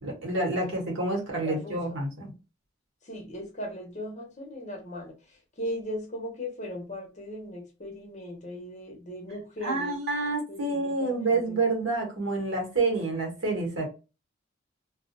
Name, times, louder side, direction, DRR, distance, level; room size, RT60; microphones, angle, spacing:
voice 1, 0.0-2.3 9.6-13.9, right 3 dB, 70° right, 1.2 m, -28 dB
voice 2, 1.4-2.0 3.0-10.0 10.5-11.6, left 1 dB, 35° left, 0.8 m, -38 dB
2.4 x 2.2 x 2.6 m
head